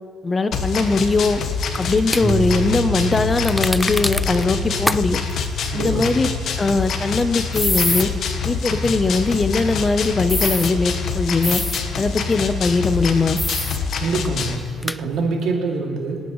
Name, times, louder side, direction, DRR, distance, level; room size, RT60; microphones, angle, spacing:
voice 1, 0.2-1.4 1.8-5.2 5.7-6.3 6.6-8.1 8.4-11.6 12.0-13.4, left 3 dB, 30° left, 11 dB, 0.9 m, -20 dB
sound 1, 0.5-14.6, left 5 dB, 70° left, 1.3 m, -26 dB
sound 2, 1.7-2.2 3.4-4.4 4.9-5.0 5.3-5.4 7.5-8.0 10.3-10.7 11.4-11.8 13.4-13.8 14.2-14.3 14.8-15.0, left 1 dB, 10° left, 0.4 m, -24 dB
sound 3, 2.2-9.3, right 4 dB, 5° right, 3.6 m, -32 dB
voice 2, 5.7-6.3 8.7-9.0 14.0-16.2, right 3 dB, 75° right, -1 dB, 2.7 m, -25 dB
25.5 x 9.5 x 3.2 m, 2.3 s
cardioid pair, 75°, 0 cm